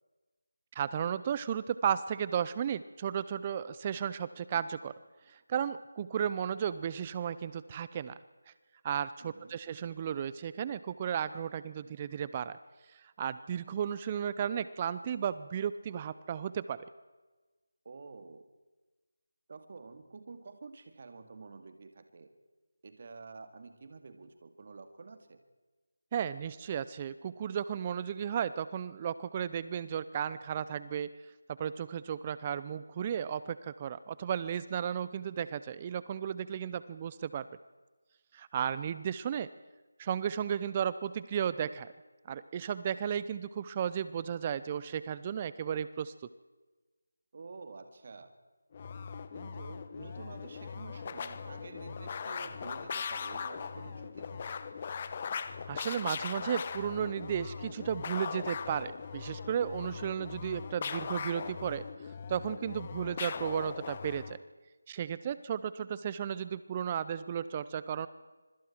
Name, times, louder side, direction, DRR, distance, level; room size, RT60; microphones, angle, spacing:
voice 1, 0.7-4.9 5.3-8.2 8.8-12.6 12.9-16.8 26.1-31.1 31.6-37.5 38.3-39.5 40.0-41.9 42.3-46.1 55.7-61.8 62.3-64.4 64.9-68.1, right 8 dB, 25° right, 15 dB, 0.6 m, -34 dB
voice 2, 9.2-9.6 17.8-18.4 19.5-22.3 22.8-25.4 47.3-48.3 49.3-54.6, right 4 dB, 40° right, 8 dB, 2.2 m, -49 dB
sound 1, 48.7-64.4, left 6 dB, 30° left, 1.0 m, -40 dB
25.5 x 25.0 x 4.5 m, 1.3 s
figure-of-eight pair, 165°, 0 cm